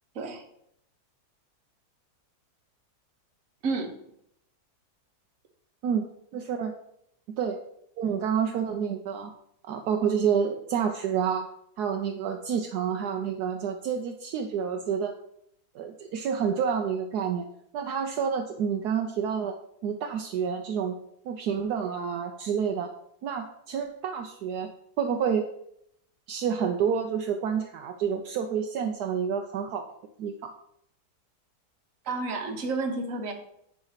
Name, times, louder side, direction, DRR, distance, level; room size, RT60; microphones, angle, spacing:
voice 1, 3.6-4.0 32.0-33.3, right 3 dB, 55° right, 5 dB, 1.4 m, -30 dB
voice 2, 6.3-6.7 7.4-7.6 8.0-9.3 9.6-11.5 11.8-15.1 15.7-17.4 17.7-19.6 19.8-21.0 21.2-22.9 23.2-24.7 25.0-25.5 26.3-29.9 30.2-30.5, right 7 dB, 75° right, 4 dB, 1.2 m, -28 dB
9.6 x 3.3 x 5.6 m, 0.74 s
omnidirectional pair, 1.7 m